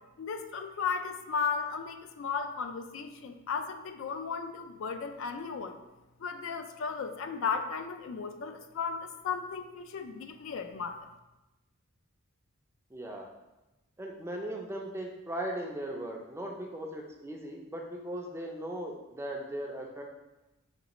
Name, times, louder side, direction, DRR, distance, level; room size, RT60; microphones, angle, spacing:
voice 1, 0.2-5.8 6.2-11.0, left 5 dB, 60° left, 8 dB, 0.3 m, -35 dB
voice 2, 12.9-13.3 14.0-20.0, right 1 dB, 10° right, 1 dB, 0.4 m, -38 dB
5.1 x 3.0 x 2.9 m, 1.0 s
head